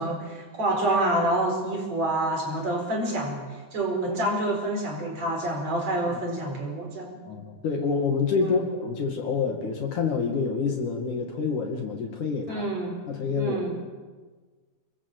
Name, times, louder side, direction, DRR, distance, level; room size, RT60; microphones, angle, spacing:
voice 1, 0.0-7.2 8.4-8.6 12.5-13.0 13.4-13.7, right 1 dB, 50° right, 3 dB, 5.9 m, -27 dB
voice 2, 7.3-12.7 13.1-13.7, left 5 dB, 65° left, 2 dB, 3.7 m, -27 dB
26.0 x 21.0 x 8.0 m, 1.4 s
omnidirectional pair, 3.9 m